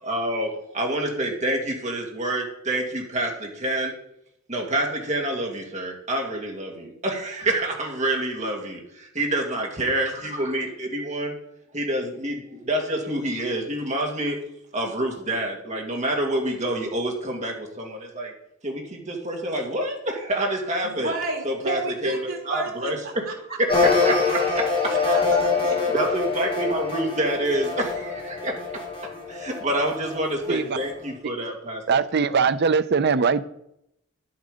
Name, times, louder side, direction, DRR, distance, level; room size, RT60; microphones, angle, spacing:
voice 1, 0.0-3.9 4.5-11.3 11.7-14.4 14.7-18.3 18.6-21.1 21.4-23.2 23.6-24.7 25.9-28.6 29.3-32.0, right 1 dB, 35° right, 2.2 m, -27 dB
voice 2, 20.8-22.9 23.3-23.8 24.9-25.9, right 2 dB, 80° right, 2.9 m, -31 dB
sound 1, 23.7-31.1, left 4 dB, 30° left, 4.1 m, -25 dB
voice 3, 31.9-33.4, right 5 dB, 55° right, 0.5 m, -21 dB
11.0 x 7.6 x 5.1 m
head